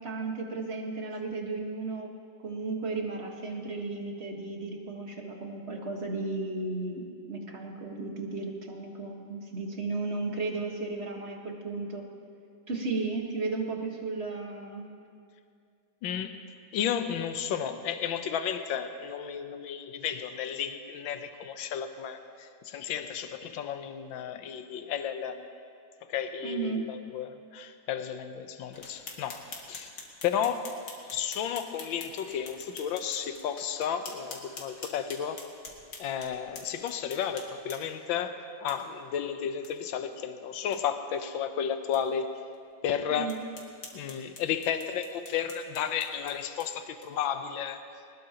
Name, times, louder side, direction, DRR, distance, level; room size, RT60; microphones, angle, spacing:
voice 1, 0.0-2.1 2.4-12.1 12.7-14.9 26.4-26.9 43.1-43.4, right 3 dB, 35° right, 1 dB, 1.6 m, -34 dB
voice 2, 16.0-16.4 16.7-25.4 26.0-29.4 29.7-29.9 30.2-30.7 31.1-35.4 36.0-38.4 38.6-42.4 42.8-43.3 43.9-47.8, left 8 dB, 80° left, 8 dB, 1.6 m, -33 dB
sound 1, 28.7-38.1 38.7-38.8 39.1-39.2 39.6-39.7 40.1-40.2 40.6-40.8 41.3-41.4 41.9-42.0 42.5-42.6 43.3-47.3, left 3 dB, 60° left, 2.2 m, -46 dB
21.0 x 19.5 x 2.9 m, 2.3 s
omnidirectional pair, 2.1 m